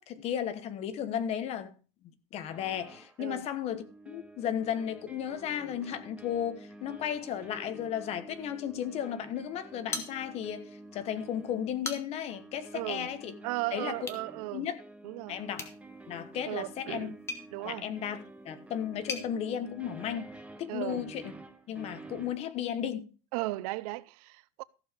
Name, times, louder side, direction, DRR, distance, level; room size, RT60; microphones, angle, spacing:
voice 1, 0.0-1.7 2.3-13.4 13.7-14.0 14.5-14.8 15.3-15.7 16.1-17.1 17.6-18.2 18.4-21.3 21.7-23.1, left 9 dB, 35° left, 1.2 m, -34 dB
sound 1, 2.5-3.2 3.7-22.4, right 2 dB, 5° right, 0.9 m, -49 dB
sound 2, 9.9-10.7 11.0-11.1 11.6-12.4 14.0-14.3 15.5-19.3, left 3 dB, 15° left, 1.4 m, -41 dB
voice 2, 12.7-13.1 13.4-14.7 15.0-15.4 16.4-17.2 17.5-17.8 20.7-21.0 23.3-24.6, right 20 dB, 80° right, 0.6 m, -36 dB
14.5 x 7.1 x 5.0 m
cardioid pair, 175°, 18 cm